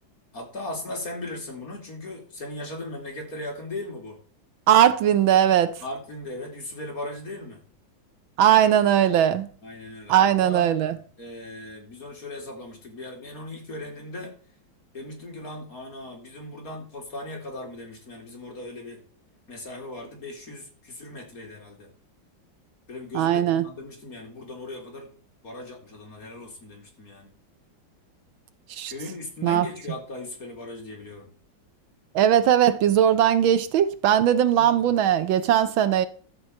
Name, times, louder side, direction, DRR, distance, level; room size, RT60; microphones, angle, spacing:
voice 1, 0.3-4.2 5.8-7.7 9.6-10.7 11.2-14.3 14.9-19.0 19.5-21.9 22.9-25.1 25.4-27.3 28.9-31.3 34.5-34.8, left 2 dB, 45° left, 3.3 m, -38 dB
voice 2, 4.7-5.7 8.4-9.5 10.1-11.0 23.1-23.7 28.7-28.9 29.4-29.7 32.1-36.1, right 10 dB, 85° right, 1.7 m, -19 dB
12.5 x 4.7 x 7.7 m
omnidirectional pair, 2.1 m